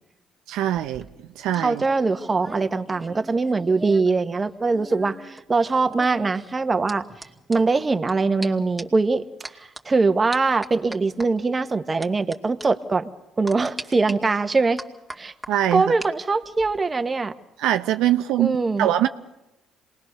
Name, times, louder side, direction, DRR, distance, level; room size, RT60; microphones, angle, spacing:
voice 1, 0.5-1.1 1.4-1.8 15.5-15.8 17.6-19.1, right 12 dB, 75° right, 0.7 m, -22 dB
sound 1, 0.9-4.2 4.4-8.1 8.4-8.5 8.8-9.0 9.4-9.8 10.3-11.3 12.0-12.4 12.6-12.7 13.5-14.1 14.8-16.1 16.4-16.8, right 2 dB, 10° right, 2.4 m, -40 dB
voice 2, 1.6-7.0 7.5-9.2 9.5-13.1 13.4-14.8 15.2-15.3 15.7-17.3 18.4-18.9, right 3 dB, 30° right, 1.4 m, -22 dB
26.5 x 20.0 x 6.7 m
hypercardioid pair, 60°, 0 cm